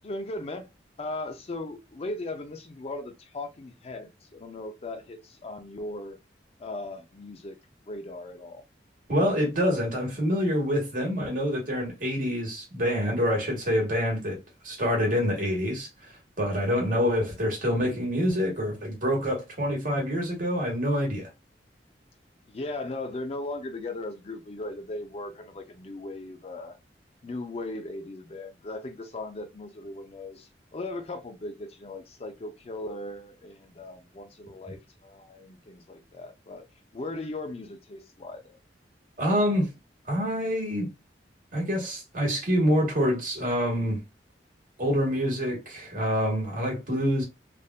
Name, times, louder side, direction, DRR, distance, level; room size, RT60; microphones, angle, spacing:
voice 1, 0.0-0.7 1.0-6.2 6.6-7.6 7.9-8.6 22.5-26.8 27.2-36.6 36.9-38.6, left 2 dB, 35° left, 0.4 m, -38 dB
voice 2, 9.1-14.4 14.6-21.3 39.2-39.7 40.1-40.9 41.5-44.0 44.8-47.2, equal, 50° right, 1.6 m, -26 dB
3.4 x 2.5 x 2.2 m
head